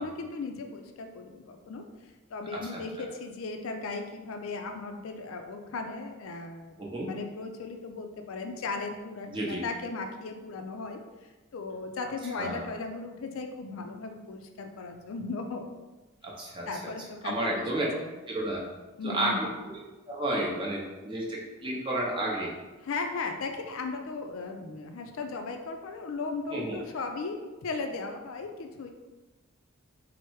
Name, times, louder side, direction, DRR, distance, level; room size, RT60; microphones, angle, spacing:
voice 1, 0.0-1.8 2.3-11.0 11.5-15.6 16.7-17.6 18.0-18.1 19.0-19.5 22.8-28.9, left 3 dB, 70° left, 4 dB, 0.4 m, -37 dB
voice 2, 2.5-3.0 6.8-7.1 9.3-9.6 12.4-12.6 16.2-16.7 17.2-17.9 18.3-18.7 19.0-19.8 20.1-22.5 26.5-26.8, right 1 dB, 20° right, -3 dB, 0.7 m, -32 dB
4.4 x 2.1 x 4.6 m, 1.2 s
head